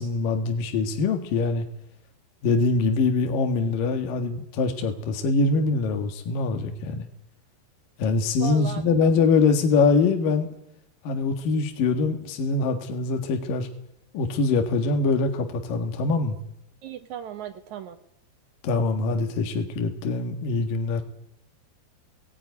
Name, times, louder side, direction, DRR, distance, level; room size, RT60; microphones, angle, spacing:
voice 1, 0.0-1.7 2.4-7.1 8.0-10.5 11.0-13.7 14.1-16.4 18.6-21.0, left 4 dB, 60° left, 5 dB, 3.1 m, -23 dB
voice 2, 8.4-9.1 16.8-18.0, right 9 dB, 80° right, 7 dB, 1.7 m, -36 dB
19.5 x 19.5 x 9.6 m, 0.79 s
omnidirectional pair, 5.1 m